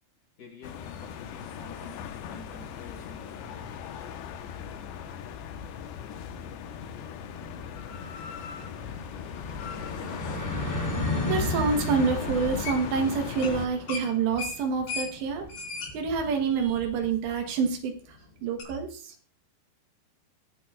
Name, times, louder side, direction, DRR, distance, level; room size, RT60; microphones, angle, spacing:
voice 1, 0.4-3.8, left 3 dB, 40° left, -1 dB, 5.1 m, -49 dB
sound 1, 0.6-13.7, left 8 dB, 80° left, 3.1 m, -38 dB
sound 2, 6.4-17.5, left 1 dB, 25° left, 1.3 m, -35 dB
voice 2, 11.3-15.5 15.9-19.1, right 5 dB, 75° right, 4 dB, 3.4 m, -27 dB
sound 3, 12.6-13.0 13.3-13.6 13.9-17.3 17.6-17.7 18.6-18.7, left 4 dB, 65° left, 5.3 m, -37 dB
22.5 x 9.2 x 2.4 m, 0.40 s
omnidirectional pair, 5.2 m